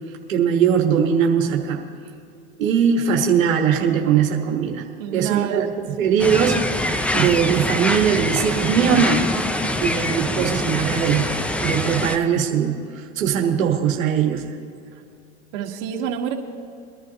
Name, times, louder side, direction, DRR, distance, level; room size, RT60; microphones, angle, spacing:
voice 1, 0.3-1.8 2.6-4.9 5.1-6.6 7.1-9.3 9.8-11.3 11.6-14.5, right 7 dB, 90° right, 1 dB, 1.5 m, -20 dB
voice 2, 5.0-5.7 6.0-6.1 9.6-9.7 10.2-10.5 14.9-15.0 15.5-16.3, right 9 dB, 65° right, 1 dB, 1.7 m, -28 dB
sound 1, 6.2-12.2, left 1 dB, 5° left, 0.3 m, -24 dB
23.5 x 11.5 x 2.9 m, 2.4 s
hypercardioid pair, 110°, 39 cm